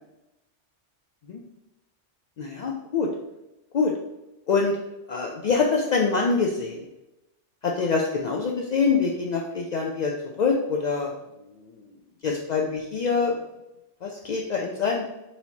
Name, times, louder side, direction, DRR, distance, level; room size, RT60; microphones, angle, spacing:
voice 1, 2.4-3.1 3.7-3.9 4.5-4.8 5.1-6.9 7.6-11.1 11.6-11.7 12.2-13.3 14.0-15.0, left 4 dB, 70° left, 0 dB, 0.4 m, -25 dB
4.3 x 4.2 x 2.7 m, 0.97 s
omnidirectional pair, 1.2 m